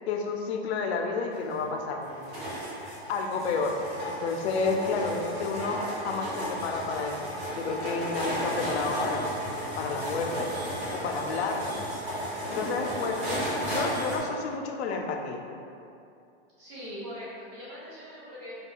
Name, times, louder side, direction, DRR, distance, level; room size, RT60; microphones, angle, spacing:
voice 1, 0.1-2.2 3.1-3.8 4.0-9.3 9.8-10.5 10.9-11.6 12.5-15.4, left 4 dB, 80° left, 3 dB, 0.5 m, -31 dB
sound 1, 1.3-14.2, equal, 60° right, 1.3 m, -34 dB
voice 2, 3.2-3.7 11.4-11.7 16.6-18.6, equal, 25° right, -13 dB, 0.9 m, -42 dB
2.3 x 2.2 x 3.7 m, 2.6 s
supercardioid pair, 180°, 32 cm